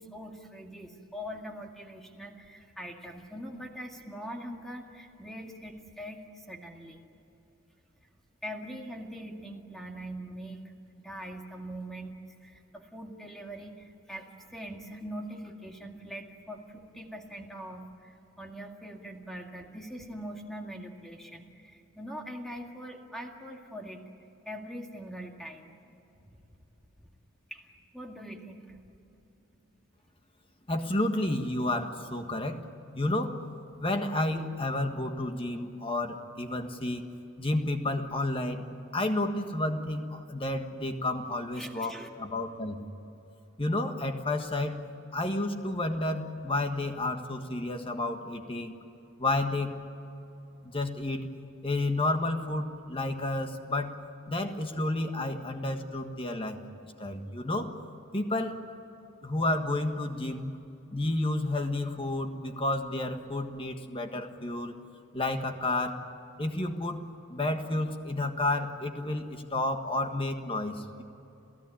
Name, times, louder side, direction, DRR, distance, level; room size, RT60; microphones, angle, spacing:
voice 1, 0.0-7.0 8.4-12.1 12.4-24.0 24.5-25.7 27.5-28.8 41.6-42.1, equal, ahead, 1 dB, 2.0 m, -42 dB
voice 2, 30.7-32.6 32.9-33.4 33.8-37.0 37.4-38.6 38.9-41.9 42.2-42.8 43.6-44.8 45.1-48.7 49.2-49.7 50.6-51.3 51.6-53.9 54.3-56.6 57.0-57.7 58.1-58.6 59.2-60.6 60.9-64.7 65.1-66.0 66.4-67.0 67.3-71.0, left 2 dB, 25° left, 5 dB, 1.6 m, -31 dB
28.5 x 16.0 x 10.0 m, 2.9 s
head